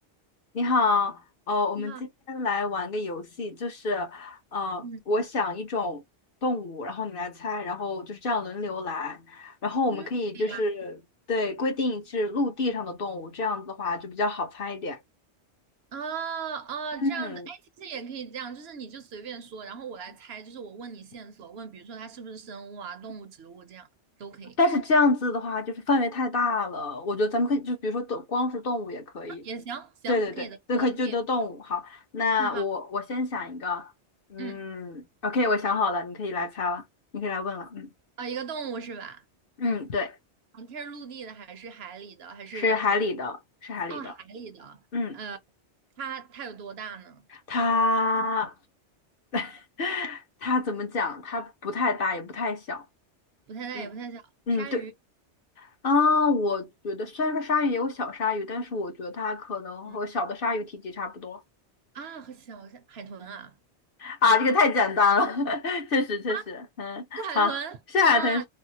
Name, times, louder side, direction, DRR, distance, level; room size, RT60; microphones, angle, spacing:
voice 1, 0.5-1.2 1.5-2.0 2.3-6.0 6.4-11.0 11.3-15.0 17.0-17.5 24.6-29.4 30.1-33.9 34.3-36.8 37.1-37.9 39.6-40.1 42.5-44.1 44.9-45.2 47.5-48.5 49.3-52.8 53.7-53.9 54.5-54.8 55.6-61.4 64.0-67.5 67.9-68.4, left 3 dB, 55° left, 1.0 m, -27 dB
voice 2, 15.9-23.9 24.2-24.6 29.4-31.2 32.4-32.6 34.4-34.7 38.2-39.2 40.5-43.1 43.9-44.8 45.1-45.4 46.0-47.3 53.5-54.2 54.5-54.9 59.8-60.0 61.9-63.5 64.4-64.6 66.3-66.4 67.2-67.8 68.1-68.4, right 6 dB, 65° right, 0.8 m, -38 dB
3.5 x 2.0 x 2.8 m
omnidirectional pair, 1.2 m